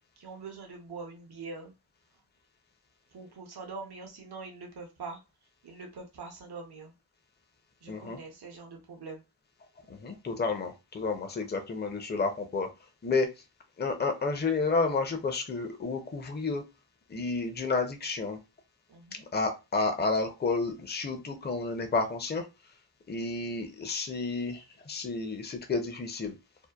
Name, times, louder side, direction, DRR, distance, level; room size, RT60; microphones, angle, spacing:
voice 1, 0.2-1.7 3.1-5.2 5.6-6.9 7.8-9.2 18.9-19.3, right 4 dB, 85° right, 1 dB, 0.6 m, -43 dB
voice 2, 7.9-8.2 9.9-12.7 13.0-13.3 13.8-16.6 17.1-18.4 19.3-22.4 23.1-26.3, left 3 dB, 25° left, 5 dB, 0.5 m, -31 dB
2.7 x 2.1 x 2.2 m, 0.27 s
wide cardioid pair, 45°, 38 cm